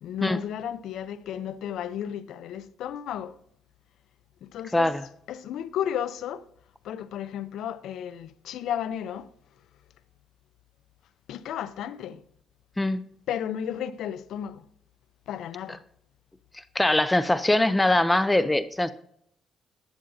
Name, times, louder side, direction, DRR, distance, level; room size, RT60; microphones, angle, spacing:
voice 1, 0.0-3.4 4.4-4.9 5.3-6.4 6.8-9.3 11.3-12.2 13.3-14.7 15.3-15.8, left 9 dB, 80° left, 0.5 m, -33 dB
voice 2, 4.7-5.0 12.8-13.1 16.5-18.9, left 1 dB, 10° left, 0.5 m, -22 dB
11.5 x 9.9 x 2.7 m
cardioid pair, 90°, 0 cm